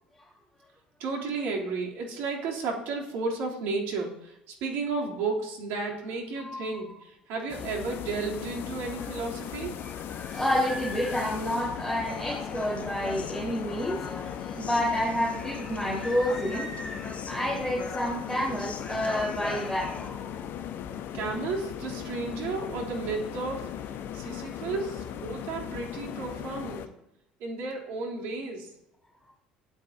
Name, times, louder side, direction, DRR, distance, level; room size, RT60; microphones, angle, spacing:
voice 1, 1.0-9.8 21.1-23.6 24.1-26.8 27.4-28.7, right 4 dB, 65° right, -2 dB, 3.3 m, -33 dB
sound 1, 7.5-26.9, left 9 dB, 55° left, 1.0 m, -38 dB
voice 2, 9.8-20.5, equal, 10° left, -6 dB, 4.3 m, -30 dB
Human voice, 12.1-20.1, left 4 dB, 35° left, 1.7 m, -41 dB
16.5 x 11.5 x 2.8 m, 0.82 s
hypercardioid pair, 60°, 4 cm